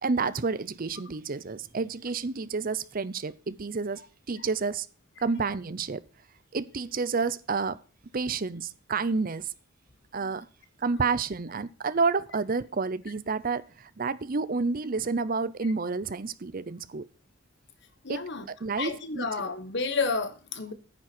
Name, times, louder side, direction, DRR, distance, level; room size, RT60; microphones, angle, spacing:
voice 1, 0.0-4.0 4.3-4.9 5.2-6.0 6.5-7.8 8.1-9.5 10.1-10.5 10.8-17.1 18.1-18.2 18.6-19.3, right 4 dB, 45° right, 0.6 m, -29 dB
voice 2, 18.0-18.5 18.8-20.7, left 4 dB, 60° left, 1.3 m, -31 dB
9.7 x 7.3 x 6.0 m
head